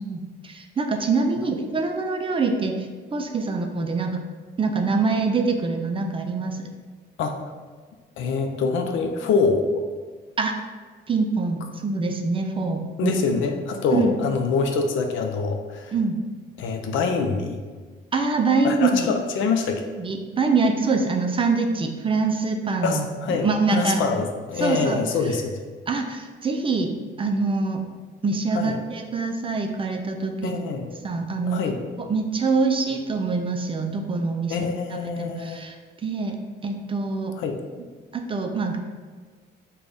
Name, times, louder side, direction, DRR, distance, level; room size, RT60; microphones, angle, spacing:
voice 1, 0.0-4.2 4.6-6.7 10.4-10.5 11.1-13.1 13.9-14.2 15.9-16.2 18.1-19.1 20.0-24.0 24.6-25.0 25.9-27.8 28.2-30.6 31.0-31.6 32.0-34.6 34.9-35.7 36.0-36.4 36.6-37.3 38.1-38.8, right 4 dB, 25° right, 4 dB, 0.4 m, -24 dB
voice 2, 8.2-9.8 13.0-15.9 16.6-17.6 18.6-19.8 22.8-25.6 28.5-28.8 30.4-30.9 31.5-31.8 34.5-35.6 37.4-37.6, left 4 dB, 75° left, 4 dB, 0.5 m, -25 dB
3.8 x 2.3 x 3.3 m, 1.5 s
cardioid pair, 90°, 20 cm